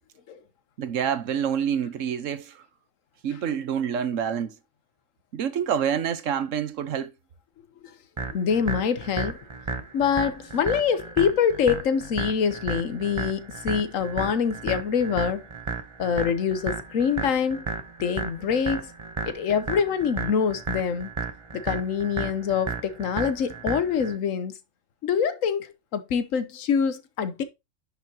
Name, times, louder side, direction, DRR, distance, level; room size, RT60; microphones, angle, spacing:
voice 1, 0.8-2.6 3.2-4.6 5.3-7.1, right 8 dB, 75° right, 1.3 m, -27 dB
sound 1, 8.2-24.2, right 4 dB, 25° right, 0.8 m, -33 dB
voice 2, 8.3-9.4 9.9-15.4 16.0-17.7 18.0-18.9 19.3-21.1 21.5-24.5 25.0-27.4, left 7 dB, 85° left, 1.3 m, -25 dB
10.5 x 5.6 x 2.8 m
omnidirectional pair, 1.3 m